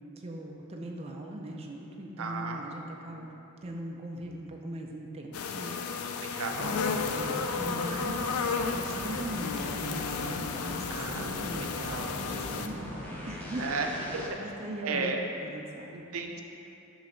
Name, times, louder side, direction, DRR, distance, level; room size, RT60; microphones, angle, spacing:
voice 1, 0.2-3.3 3.6-5.8 6.6-8.3 8.7-11.8 12.2-13.7 14.4-15.9, right 1 dB, 30° right, 0 dB, 0.4 m, -40 dB
voice 2, 2.2-2.6 3.1-3.3 6.3-6.8 10.9-12.2 13.6-13.9 14.1-14.2 14.6-15.2 15.9-16.4, right 4 dB, 80° right, 3 dB, 0.6 m, -35 dB
sound 1, 5.3-12.7, left 5 dB, 90° left, 0.4 m, -33 dB
sound 2, 6.5-14.3, left 1 dB, 10° left, 0.6 m, -41 dB
7.0 x 3.2 x 5.1 m, 2.9 s
head